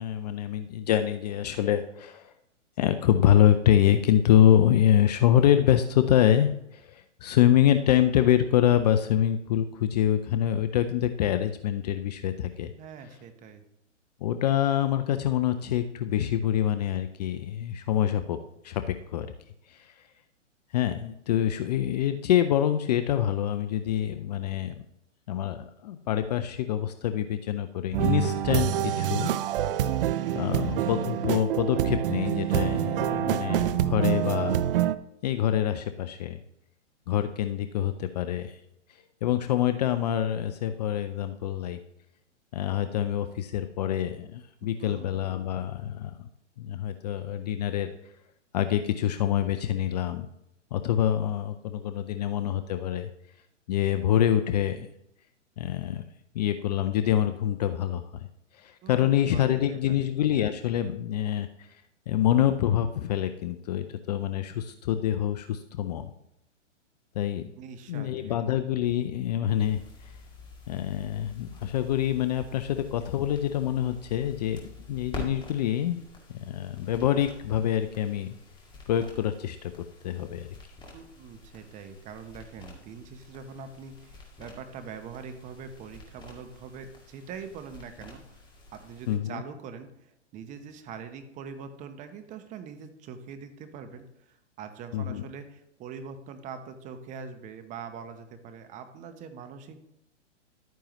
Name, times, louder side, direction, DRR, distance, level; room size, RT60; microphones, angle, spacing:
voice 1, 0.0-2.3 2.8-12.7 14.2-18.4 18.6-19.3 19.7-19.9 20.7-24.8 25.3-29.3 30.3-34.6 35.2-36.4 37.1-38.6 39.2-41.8 42.5-46.1 46.6-47.9 48.5-50.3 50.7-53.1 53.7-54.9 55.6-56.0 56.3-58.0 58.5-61.7 62.1-66.1 67.2-67.5 67.9-69.8 70.7-76.0 76.3-78.4 78.9-80.5 89.1-89.4 94.9-95.2, left 11 dB, 35° left, 10 dB, 0.4 m, -25 dB
voice 2, 12.8-13.6 32.8-33.3 44.8-45.2 58.8-60.1 67.6-68.4 80.9-88.2 88.7-99.9, right 6 dB, 20° right, 9 dB, 0.8 m, -43 dB
sound 1, 27.9-34.9, right 11 dB, 50° right, 0.5 m, -26 dB
sound 2, 69.6-89.2, left 2 dB, 10° left, 2.1 m, -47 dB
12.0 x 9.2 x 3.0 m, 0.81 s
hypercardioid pair, 130°, 37 cm